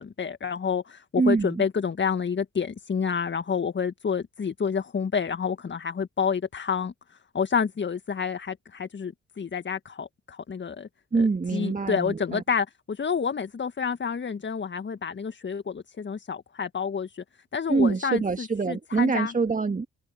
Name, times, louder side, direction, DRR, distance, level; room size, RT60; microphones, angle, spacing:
voice 1, 0.0-6.9 7.3-10.9 11.5-17.2 17.5-19.3, left 6 dB, 35° left, 1.9 m, -29 dB
voice 2, 1.2-1.6 11.1-12.4 17.7-19.9, right 4 dB, 25° right, 1.9 m, -25 dB
figure-of-eight pair, 40°, 32 cm